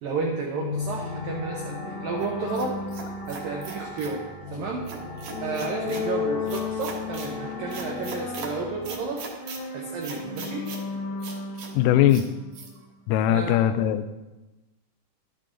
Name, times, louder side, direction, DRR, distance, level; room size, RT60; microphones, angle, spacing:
voice 1, 0.0-2.8 3.3-4.9 5.4-9.2 9.7-10.6 12.8-12.9 13.3-13.6, right 4 dB, 85° right, -1 dB, 2.0 m, -32 dB
sound 1, 0.5-13.0, left 5 dB, 75° left, 2.8 m, -35 dB
sound 2, 0.8-8.9, right 2 dB, 50° right, 1.2 m, -42 dB
sound 3, 2.2-4.2 4.9-6.1 6.5-7.3 7.7-8.5 8.8-9.6 10.0-10.8 11.2-11.7 12.1-12.3 12.5-12.7, right 5 dB, 70° right, 2.0 m, -40 dB
voice 2, 11.7-12.3 13.1-14.1, left 11 dB, 90° left, 11 dB, 3.2 m, -20 dB
12.0 x 8.6 x 3.8 m, 1.1 s
omnidirectional pair, 5.7 m